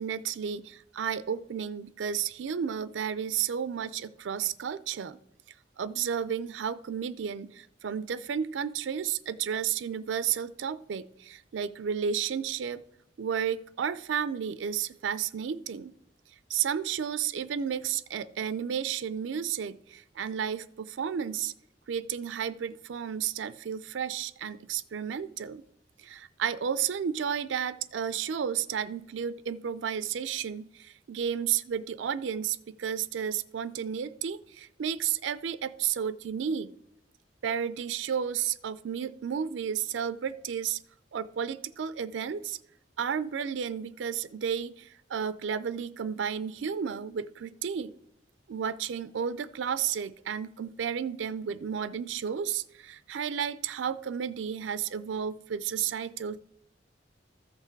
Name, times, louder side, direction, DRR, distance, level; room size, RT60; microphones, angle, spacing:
voice 1, 0.0-5.2 5.8-12.8 13.2-15.9 16.5-21.5 21.9-25.6 26.0-36.7 37.4-40.8 41.1-42.6 43.0-47.9 48.5-56.4, right 8 dB, 90° right, 15 dB, 0.4 m, -32 dB
13.5 x 5.8 x 4.5 m, 0.79 s
head